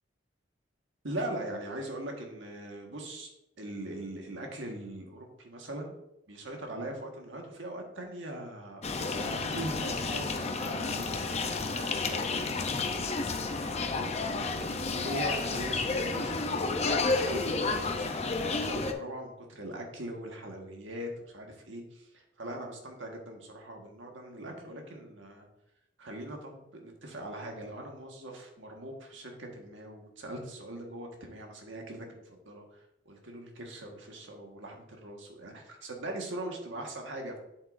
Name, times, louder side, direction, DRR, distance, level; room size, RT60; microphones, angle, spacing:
voice 1, 1.0-3.3 3.6-5.9 6.3-14.1 14.8-17.4 17.8-25.5 26.0-37.4, right 1 dB, 85° right, 1 dB, 1.6 m, -41 dB
sound 1, 8.8-18.9, left 3 dB, 35° left, 0.7 m, -31 dB
8.0 x 7.5 x 2.6 m, 0.87 s
head